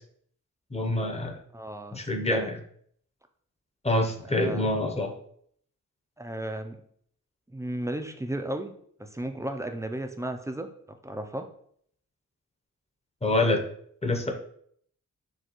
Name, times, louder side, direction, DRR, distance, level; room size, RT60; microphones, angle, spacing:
voice 1, 0.7-1.4 1.9-2.5 3.8-5.1 13.2-13.6 14.0-14.3, left 1 dB, 20° left, 3 dB, 0.7 m, -26 dB
voice 2, 1.5-2.5 4.2-4.7 6.2-6.8 7.5-8.7 9.0-11.5, right 1 dB, 10° right, 6 dB, 0.4 m, -34 dB
6.5 x 2.3 x 2.9 m, 0.64 s
wide cardioid pair, 85°, 32 cm